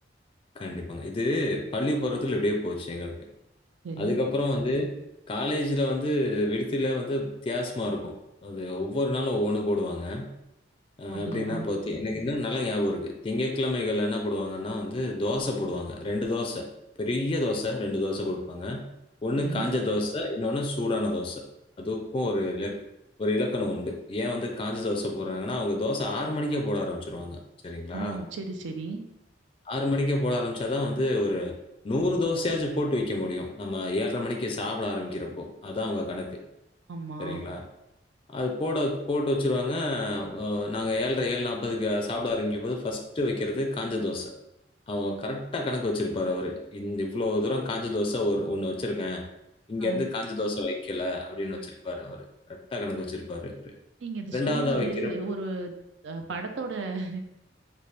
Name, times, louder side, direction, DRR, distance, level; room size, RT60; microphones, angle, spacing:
voice 1, 0.6-3.2 4.0-4.9 5.3-8.1 8.4-10.3 11.0-16.7 17.0-18.9 19.2-21.4 21.8-22.8 23.2-27.4 27.6-28.2 29.7-31.5 31.8-36.4 37.2-37.6 38.3-44.3 44.9-49.2 49.7-53.7 54.3-55.2, left 1 dB, 30° left, 2 dB, 0.4 m, -29 dB
voice 2, 3.8-4.2 11.1-11.7 19.3-19.8 27.9-29.0 36.9-37.4 49.8-50.1 54.0-55.7 56.0-57.2, right 3 dB, 75° right, 5 dB, 0.4 m, -34 dB
4.1 x 2.1 x 3.2 m, 0.87 s
head